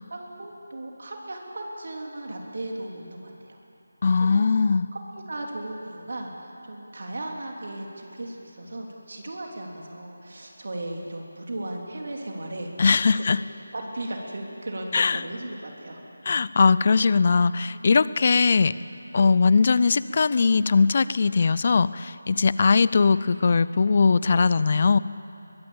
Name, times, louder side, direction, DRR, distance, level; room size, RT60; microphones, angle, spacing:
voice 1, 0.1-3.6 4.2-4.6 4.9-13.2 13.7-16.0, right 1 dB, 60° right, 0 dB, 3.4 m, -36 dB
voice 2, 4.0-4.9 12.8-13.4 14.9-15.2 16.3-18.7 19.1-25.0, left 4 dB, 40° left, 17 dB, 0.5 m, -20 dB
22.0 x 21.0 x 7.2 m, 2.8 s
figure-of-eight pair, 160°, 0 cm